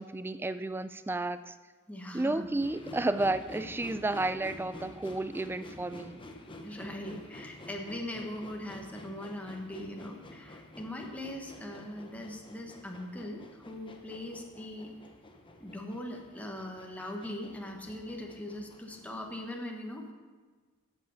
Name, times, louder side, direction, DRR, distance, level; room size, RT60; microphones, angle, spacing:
voice 1, 0.0-1.6 2.1-6.2, right 2 dB, 10° right, 12 dB, 0.3 m, -32 dB
voice 2, 1.9-2.5 6.6-14.9 15.6-20.1, left 1 dB, 5° left, 1 dB, 1.2 m, -40 dB
sound 1, 2.6-19.4, left 1 dB, 25° left, 0.9 m, -49 dB
8.2 x 8.0 x 6.9 m, 1.4 s
head